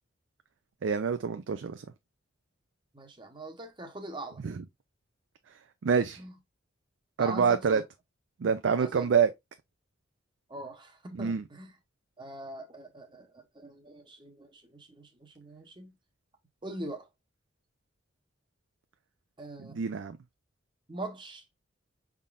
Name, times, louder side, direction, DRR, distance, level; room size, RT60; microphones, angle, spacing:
voice 1, 0.8-1.8 4.4-4.6 5.8-6.2 7.2-7.8 8.4-9.3 11.2-11.4 19.6-20.2, right 6 dB, 70° right, 0.4 m, -26 dB
voice 2, 2.9-4.4 6.2-6.3 7.2-7.8 8.8-9.1 10.5-11.8 12.2-15.9 16.6-17.1 19.4-19.8 20.9-21.4, right 2 dB, 25° right, 0.9 m, -42 dB
5.5 x 3.7 x 2.4 m
head